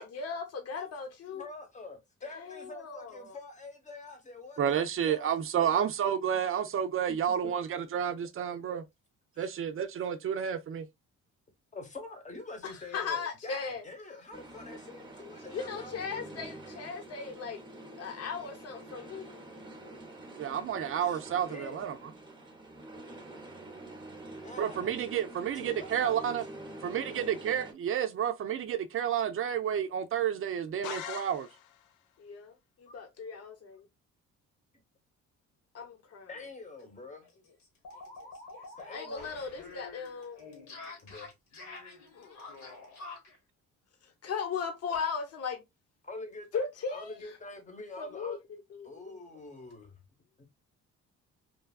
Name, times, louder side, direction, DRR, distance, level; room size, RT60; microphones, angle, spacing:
voice 1, 0.0-1.5 2.3-3.4 12.6-13.8 15.5-17.6 17.9-19.3 32.2-33.5 35.7-36.3 38.9-40.5 42.1-42.5 44.2-45.6 46.5-47.2 48.0-49.2, left 5 dB, 55° left, 1.0 m, -37 dB
voice 2, 1.3-5.9 9.3-9.5 11.7-16.4 21.0-21.2 21.5-21.9 24.4-25.0 25.4-26.4 36.3-37.3 38.8-39.3 41.0-41.3 46.0-46.6 46.9-48.4 48.8-50.0 50.4-50.5, left 3 dB, 25° left, 1.0 m, -46 dB
voice 3, 4.6-8.8 9.4-10.9 20.4-22.0 24.6-26.4 26.8-31.5, right 9 dB, 45° right, 0.5 m, -30 dB
sound 1, 14.3-27.7, right 2 dB, 15° right, 0.8 m, -47 dB
sound 2, 30.8-31.9, left 10 dB, 90° left, 0.5 m, -41 dB
sound 3, 36.4-36.5 36.8-36.9 37.2-43.4, left 3 dB, 70° left, 1.3 m, -47 dB
3.2 x 2.3 x 2.3 m
cardioid pair, 90°, 30 cm